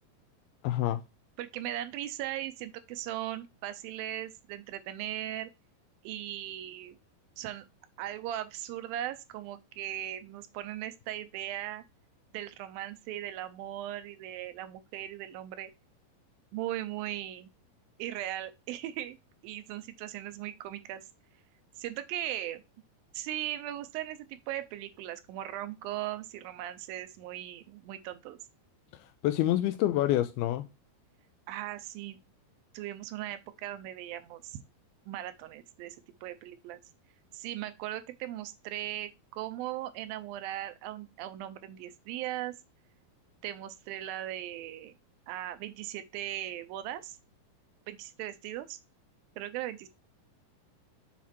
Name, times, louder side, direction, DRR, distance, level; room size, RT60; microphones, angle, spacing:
voice 1, 0.6-1.0 29.2-30.6, left 14 dB, 90° left, 2.5 m, -27 dB
voice 2, 1.4-5.5 6.0-7.0 7.4-7.7 8.0-11.8 12.3-15.7 16.5-17.5 18.0-19.2 19.4-21.0 21.8-22.6 23.1-28.4 31.5-32.2 32.7-34.6 35.1-36.0 36.2-36.8 37.3-42.5 43.4-44.9 45.3-47.2 47.9-48.8 49.4-49.9, right 13 dB, 80° right, 2.3 m, -38 dB
7.3 x 4.1 x 4.3 m
omnidirectional pair, 4.3 m